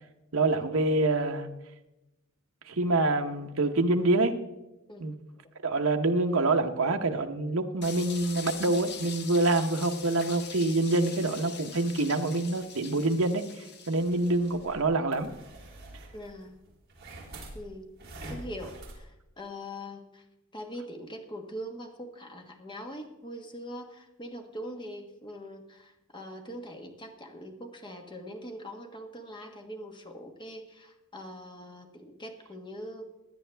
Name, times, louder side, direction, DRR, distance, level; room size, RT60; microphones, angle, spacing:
voice 1, 0.3-1.5 2.7-4.3 5.0-5.1 5.6-15.3, right 2 dB, 65° right, 6 dB, 1.0 m, -26 dB
sound 1, 7.8-14.7, left 6 dB, 50° left, 1.2 m, -43 dB
sound 2, 14.0-19.0, right 1 dB, 45° right, 3.2 m, -46 dB
voice 2, 16.1-16.5 17.5-17.9 18.3-20.2 20.5-33.1, equal, 20° left, 4 dB, 1.4 m, -42 dB
16.5 x 10.0 x 3.4 m, 0.96 s
head